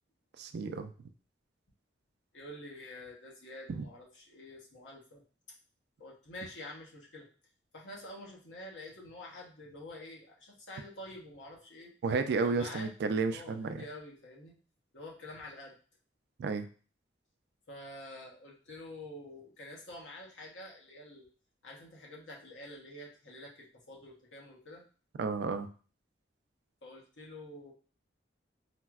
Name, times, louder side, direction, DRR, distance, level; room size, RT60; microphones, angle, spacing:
voice 1, 0.4-0.9 3.7-3.8 12.0-13.8 16.4-16.7 25.2-25.7, right 4 dB, 60° right, 9 dB, 0.3 m, -32 dB
voice 2, 2.3-5.2 6.0-7.3 7.7-12.0 12.4-12.9 13.3-14.6 14.9-15.8 17.7-21.3 21.6-24.8 26.8-27.7, left 1 dB, 80° left, -3 dB, 0.9 m, -48 dB
4.3 x 2.0 x 2.3 m, 0.38 s
head